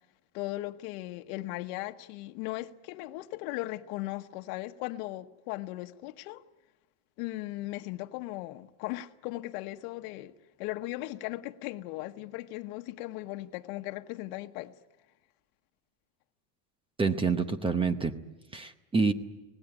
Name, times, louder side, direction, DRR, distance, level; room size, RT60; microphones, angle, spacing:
voice 1, 0.3-6.4 7.2-10.3 10.6-14.7, left 17 dB, 65° left, 1.2 m, -37 dB
voice 2, 17.0-18.1 18.5-19.1, right 4 dB, 10° right, 0.8 m, -27 dB
25.0 x 18.5 x 9.9 m
cardioid pair, 155°, 45 cm